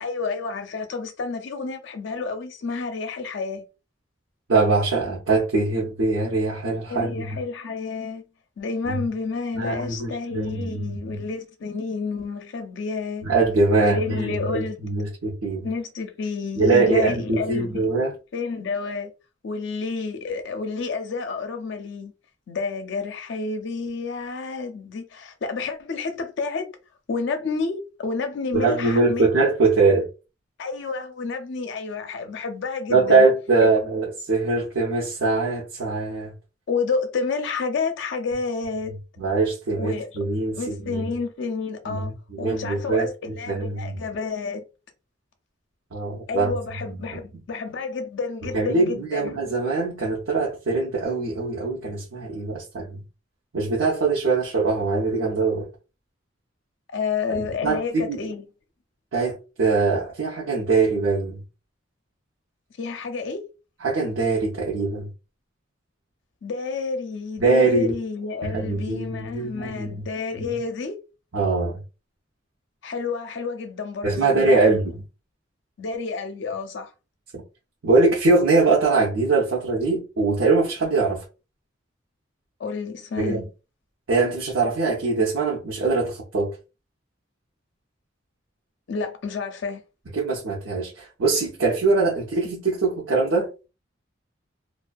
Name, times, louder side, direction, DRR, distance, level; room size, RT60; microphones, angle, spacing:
voice 1, 0.0-3.7 6.9-8.2 8.6-13.3 13.7-14.8 15.6-17.9 18.3-19.1 19.4-22.1 22.5-26.7 27.1-29.3 30.6-33.3 36.7-38.9 39.8-40.1 40.6-42.1 42.4-44.6 46.3-49.4 56.9-58.5 62.8-63.4 66.4-71.0 72.8-74.9 75.8-76.9 82.6-83.5 88.9-89.8, left 4 dB, 65° left, 0.4 m, -30 dB
voice 2, 4.5-7.4 8.9-9.1 9.5-11.2 13.2-15.7 16.6-18.1 28.5-30.1 32.9-36.3 39.2-41.0 41.9-44.0 45.9-46.5 46.9-47.2 48.5-53.0 53.5-55.7 57.6-58.3 59.1-61.4 63.8-65.1 67.4-67.9 68.4-70.0 71.3-71.8 74.0-74.9 77.3-77.4 77.8-81.2 83.2-83.4 84.1-86.5 90.1-93.5, right 3 dB, 85° right, 0.8 m, -22 dB
2.5 x 2.3 x 2.2 m
head